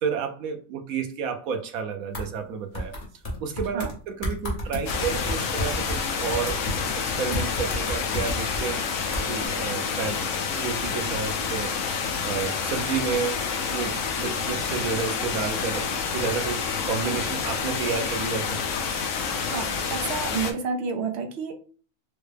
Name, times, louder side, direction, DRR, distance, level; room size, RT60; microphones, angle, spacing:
voice 1, 0.0-2.9 3.4-6.6 7.0-8.8 9.3-11.7 12.2-15.9 16.1-18.6, right 6 dB, 90° right, 5 dB, 1.1 m, -31 dB
sound 1, 2.1-2.3 2.7-3.9 4.2-8.7 9.1-9.5, left 1 dB, 40° left, 1.1 m, -31 dB
sound 2, 4.9-20.5, left 6 dB, 70° left, 0.9 m, -28 dB
voice 2, 19.5-21.5, right 5 dB, 60° right, 4 dB, 0.9 m, -30 dB
4.6 x 2.1 x 3.3 m, 0.41 s
omnidirectional pair, 1.4 m